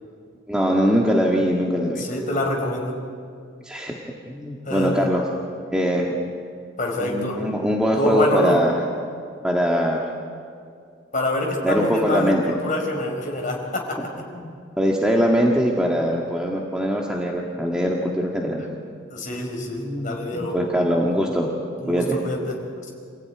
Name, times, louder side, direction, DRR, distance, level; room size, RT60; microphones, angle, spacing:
voice 1, 0.5-2.0 3.6-5.3 5.7-6.1 7.0-8.7 9.4-10.1 11.6-12.5 14.3-18.6 19.8-21.5 21.9-22.2, equal, 5° right, -2 dB, 1.7 m, -22 dB
voice 2, 2.0-2.9 4.6-5.1 6.8-7.4 7.9-8.6 11.1-14.0 19.1-20.6 21.0-21.2 21.8-22.6, left 1 dB, 40° left, 0 dB, 5.0 m, -26 dB
28.0 x 16.0 x 9.6 m, 2.3 s
head